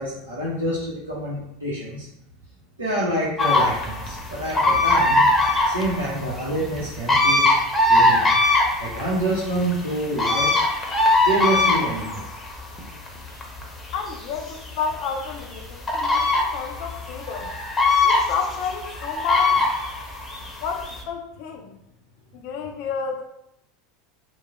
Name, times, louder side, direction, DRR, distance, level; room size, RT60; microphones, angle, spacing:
voice 1, 0.0-2.1 2.8-5.3 5.6-7.5 7.9-8.4 8.8-10.5 11.2-12.3, right 1 dB, 85° right, -8 dB, 0.7 m, -27 dB
sound 1, 3.4-21.0, left 2 dB, 15° left, 0.7 m, -22 dB
voice 2, 13.9-17.5 18.0-19.7 20.6-21.8 22.3-23.2, left 6 dB, 55° left, 4 dB, 0.4 m, -30 dB
3.1 x 2.0 x 3.5 m, 0.83 s
figure-of-eight pair, 75°, 0 cm